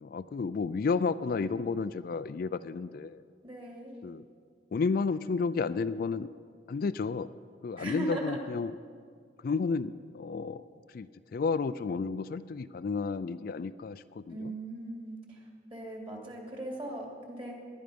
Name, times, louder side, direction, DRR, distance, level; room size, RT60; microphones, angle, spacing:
voice 1, 0.0-3.2 4.0-4.2 4.7-6.3 6.7-7.3 7.6-8.7 9.4-10.6 10.9-14.5, left 4 dB, 55° left, 13 dB, 0.3 m, -32 dB
voice 2, 3.4-4.0 7.8-8.4 14.3-17.6, right 1 dB, 30° right, -1 dB, 2.9 m, -39 dB
19.5 x 11.0 x 5.2 m, 2.1 s
head